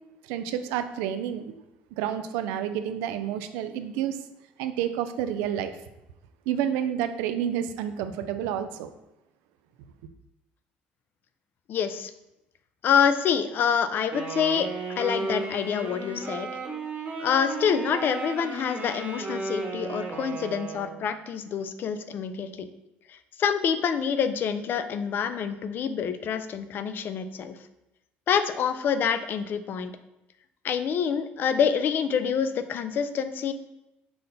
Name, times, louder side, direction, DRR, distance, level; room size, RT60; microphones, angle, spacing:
voice 1, 0.2-1.5 1.9-4.2 4.6-5.8 6.5-8.9, right 10 dB, 90° right, 9 dB, 0.3 m, -29 dB
voice 2, 11.7-12.1 12.8-14.7 15.0-16.5 17.2-22.7 23.1-27.6 28.3-29.9 30.6-33.5, left 7 dB, 55° left, 11 dB, 0.4 m, -26 dB
Wind instrument woodwind instrument, 14.1-21.1, right 3 dB, 45° right, 1.1 m, -34 dB
5.6 x 2.2 x 3.9 m, 0.90 s
supercardioid pair, 95°, 4 cm